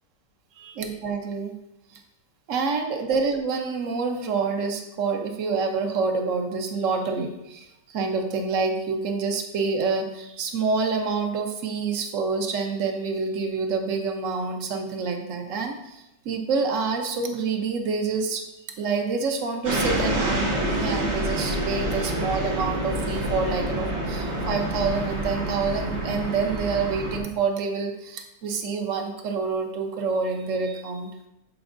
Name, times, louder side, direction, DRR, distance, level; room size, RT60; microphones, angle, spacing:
voice 1, 0.6-1.5 1.9-2.0 2.5-18.4 18.8-31.1, right 4 dB, 55° right, 4 dB, 1.1 m, -27 dB
sound 1, 19.6-27.2, right 1 dB, 75° right, 2.2 m, -27 dB
12.0 x 4.5 x 2.6 m, 0.92 s
omnidirectional pair, 1.9 m